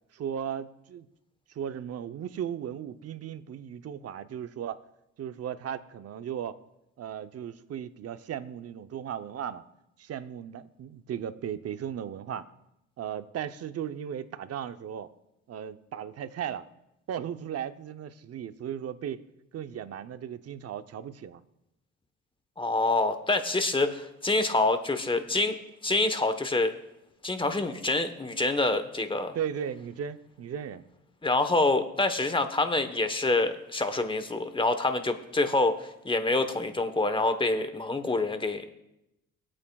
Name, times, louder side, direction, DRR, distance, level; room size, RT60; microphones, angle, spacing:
voice 1, 0.1-1.1 1.5-4.8 5.2-6.6 7.0-9.6 10.0-12.5 13.0-15.1 15.5-16.6 17.1-19.2 19.5-21.4 29.3-30.8, right 9 dB, 55° right, 11 dB, 0.7 m, -36 dB
voice 2, 22.6-25.6 25.8-26.7 27.2-29.4 31.2-38.7, left 2 dB, 15° left, 9 dB, 1.1 m, -26 dB
20.5 x 8.7 x 2.3 m, 0.88 s
cardioid pair, 90°, 30 cm